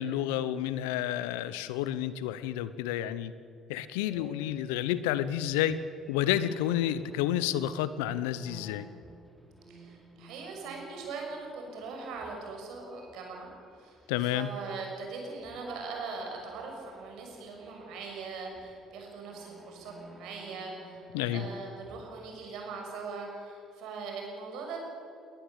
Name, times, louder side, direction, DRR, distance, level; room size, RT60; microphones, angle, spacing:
voice 1, 0.0-3.3 3.7-5.8 6.1-8.9 14.1-14.5 21.1-21.5, left 12 dB, 80° left, 15 dB, 0.9 m, -30 dB
sound 1, 4.0-15.0 15.4-22.4, right 1 dB, ahead, 3.7 m, -54 dB
voice 2, 9.7-13.5 13.7-24.8, right 4 dB, 70° right, 1 dB, 6.3 m, -41 dB
20.5 x 19.5 x 8.3 m, 2.6 s
hypercardioid pair, 55°, 0 cm